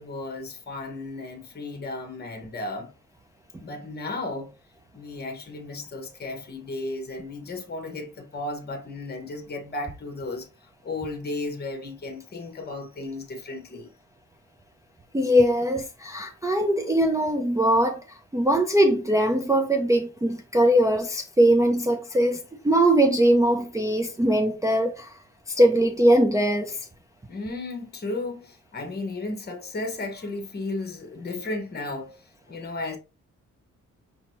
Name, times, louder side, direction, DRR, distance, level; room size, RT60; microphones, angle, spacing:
voice 1, 0.0-2.9 3.6-4.5 4.9-10.5 10.8-13.9 27.3-32.2 32.5-33.0, left 2 dB, 35° left, 1.1 m, -34 dB
voice 2, 15.1-18.0 18.3-25.1 25.6-26.8, right 1 dB, 10° right, 0.4 m, -21 dB
5.5 x 2.8 x 3.0 m
wide cardioid pair, 150°, 30 cm